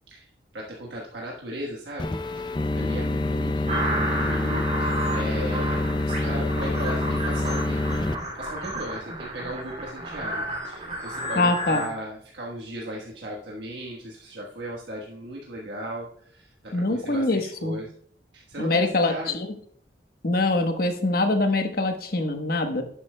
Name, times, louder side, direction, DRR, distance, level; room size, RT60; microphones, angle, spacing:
voice 1, 0.5-2.5 2.7-8.0 8.3-17.9 18.3-19.4, equal, 80° right, -3 dB, 1.3 m, -37 dB
sound 1, 2.0-8.2, left 2 dB, 25° left, 0.5 m, -26 dB
sound 2, 3.7-11.9, right 1 dB, 40° right, 2.6 m, -32 dB
voice 2, 11.4-11.8 16.7-17.8 18.6-19.5 20.2-22.8, left 2 dB, 55° left, 6 dB, 1.1 m, -24 dB
11.5 x 8.6 x 2.2 m, 0.62 s
head